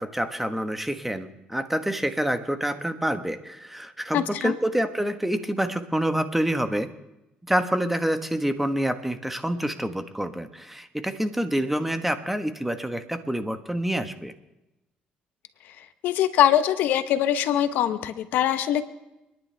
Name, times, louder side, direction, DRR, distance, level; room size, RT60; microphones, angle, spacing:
voice 1, 0.0-6.9 7.5-14.3, right 1 dB, 5° right, 8 dB, 1.3 m, -27 dB
voice 2, 4.1-4.5 16.0-18.8, left 11 dB, 75° left, 11 dB, 0.9 m, -22 dB
30.0 x 10.5 x 3.4 m, 0.94 s
cardioid pair, 85°, 3 cm